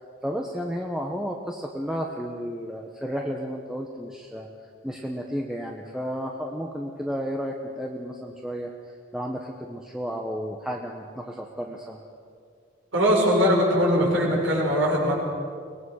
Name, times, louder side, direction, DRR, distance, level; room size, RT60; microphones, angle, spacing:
voice 1, 0.2-4.5 4.8-8.7 9.1-12.0, equal, 5° right, 0 dB, 1.2 m, -32 dB
voice 2, 12.9-15.1, equal, 70° right, -3 dB, 6.6 m, -21 dB
23.5 x 20.0 x 6.5 m, 2.2 s
head